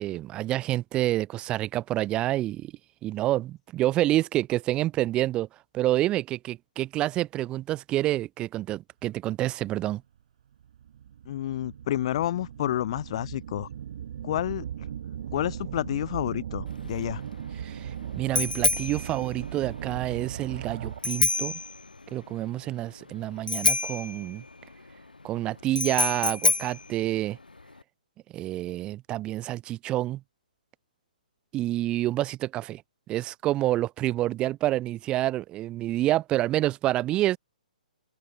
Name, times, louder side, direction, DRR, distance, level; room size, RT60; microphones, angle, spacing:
voice 1, 0.0-2.7 3.0-5.5 5.7-10.0 17.6-21.6 22.1-24.4 25.2-27.4 28.3-30.2 31.5-32.8 33.1-37.4, right 15 dB, 20° right, 4.5 m, -28 dB
sound 1, 10.6-21.3, right 9 dB, 50° right, 6.8 m, -38 dB
voice 2, 11.3-13.7 14.2-14.6 15.3-17.2, left 12 dB, 40° left, 2.8 m, -29 dB
Bicycle bell, 16.7-27.8, left 3 dB, 75° left, 2.0 m, -29 dB
open air
figure-of-eight pair, 125°, 5 cm